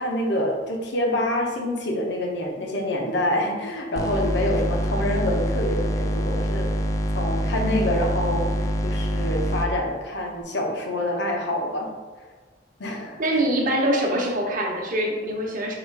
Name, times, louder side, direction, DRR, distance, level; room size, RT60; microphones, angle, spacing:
voice 1, 0.0-6.8 7.1-11.9 12.8-13.4, left 1 dB, 65° left, 1 dB, 0.7 m, -26 dB
sound 1, 4.0-9.7, equal, 20° left, 0.3 m, -25 dB
voice 2, 13.2-15.7, right 1 dB, 45° right, -1 dB, 0.9 m, -24 dB
4.9 x 2.4 x 4.6 m, 1.4 s
head